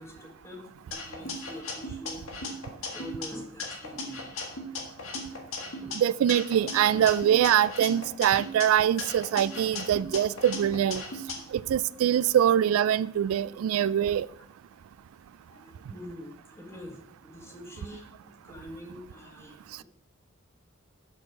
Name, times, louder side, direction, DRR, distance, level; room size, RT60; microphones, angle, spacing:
voice 1, 0.0-4.3 4.8-5.1 5.8-6.0 6.9-7.0 11.3-11.4 13.4-13.5 14.3-14.5 15.4-19.8, equal, 15° left, 1.5 m, -45 dB
sound 1, 0.9-3.3 3.6-6.0 6.3-8.6 9.0-11.3, left 2 dB, 75° left, 1.7 m, -37 dB
voice 2, 6.0-11.0 11.5-14.3, right 10 dB, 90° right, 0.3 m, -24 dB
6.5 x 6.3 x 5.8 m
head